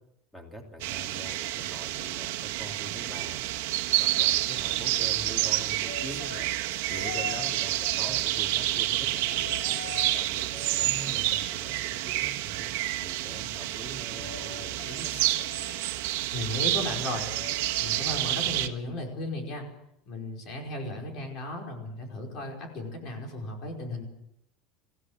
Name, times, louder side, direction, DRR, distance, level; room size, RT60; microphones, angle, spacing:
voice 1, 0.3-3.5 4.0-6.5 6.9-10.5 10.8-12.7 13.0-15.2, equal, 5° left, 2 dB, 3.2 m, -43 dB
sound 1, 0.8-18.7, right 15 dB, 75° right, 1.5 m, -29 dB
sound 2, 5.4-8.7 9.2-10.2 10.5-12.1 14.1-16.3 17.2-18.7 19.0-19.4 20.5-20.6, left 6 dB, 65° left, 1.8 m, -45 dB
voice 2, 16.3-17.3 17.8-19.7 20.1-24.0, left 1 dB, 40° left, 2 dB, 5.1 m, -35 dB
26.0 x 16.5 x 6.5 m, 0.80 s
cardioid pair, 175°, 0 cm